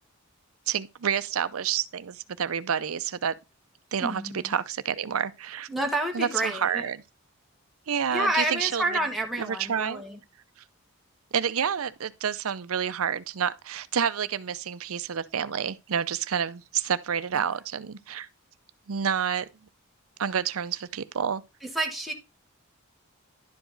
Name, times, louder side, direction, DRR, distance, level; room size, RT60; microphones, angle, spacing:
voice 1, 0.7-3.3 3.9-5.7 6.1-7.0 7.9-9.0 9.4-10.0 11.3-18.3 18.9-19.5 20.2-21.4, right 8 dB, 75° right, 0.6 m, -29 dB
voice 2, 4.0-4.5 5.7-6.9 8.1-10.2 21.6-22.1, right 1 dB, ahead, 1.3 m, -29 dB
11.5 x 5.0 x 3.9 m
head